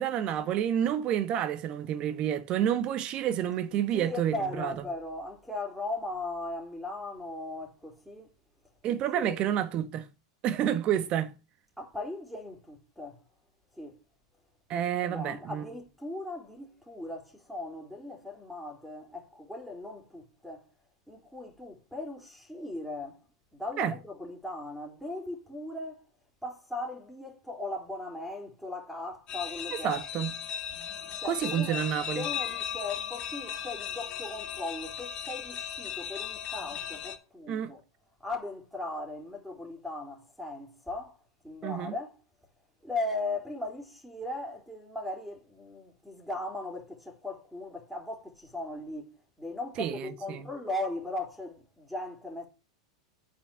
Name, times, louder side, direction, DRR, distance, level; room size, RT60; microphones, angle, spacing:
voice 1, 0.0-4.8 8.8-10.1 10.4-11.3 14.7-15.6 23.8-23.9 29.7-30.3 31.3-32.3 37.5-37.7 41.6-41.9 49.8-50.5, right 10 dB, 40° right, 1.3 m, -29 dB
voice 2, 3.9-8.3 9.1-9.4 11.8-13.2 13.8-14.0 14.7-20.6 21.1-23.2 23.5-26.1 26.4-30.0 31.2-31.8 32.1-37.8 38.2-41.1 41.4-42.1 42.8-52.5, left 2 dB, ahead, 3.7 m, -38 dB
sound 1, 29.3-37.2, left 9 dB, 40° left, 2.2 m, -37 dB
8.4 x 5.9 x 7.2 m
figure-of-eight pair, 90°, 3 cm